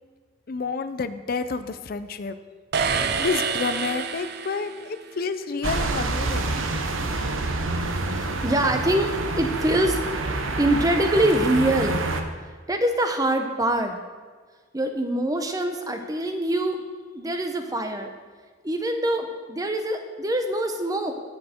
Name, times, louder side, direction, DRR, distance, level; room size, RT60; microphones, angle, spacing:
voice 1, 0.5-2.4 3.2-6.5, left 4 dB, 50° left, 11 dB, 0.5 m, -29 dB
sound 1, 2.7-5.0, right 5 dB, 55° right, 0.6 m, -27 dB
sound 2, 5.6-12.2, right 2 dB, 85° right, 1.0 m, -27 dB
voice 2, 8.1-10.0 10.3-12.1 12.7-14.0 14.7-16.8 17.1-18.1 18.6-21.1, right 1 dB, 20° right, 6 dB, 0.8 m, -24 dB
16.0 x 6.6 x 4.4 m, 1.5 s
head